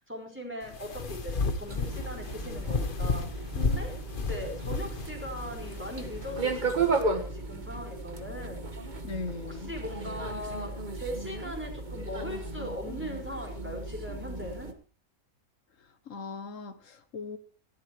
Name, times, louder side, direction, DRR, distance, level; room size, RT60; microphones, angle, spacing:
voice 1, 0.0-3.9 4.3-8.6 9.4-14.7, equal, 10° right, 1 dB, 5.0 m, -39 dB
sound 1, 0.6-7.0, left 4 dB, 40° left, 1.3 m, -33 dB
sound 2, 1.7-14.7, right 3 dB, 30° right, 1.7 m, -35 dB
voice 2, 9.0-9.7 16.1-17.4, left 4 dB, 60° left, 12 dB, 1.6 m, -38 dB
19.5 x 14.0 x 3.1 m, 0.39 s
omnidirectional pair, 1.5 m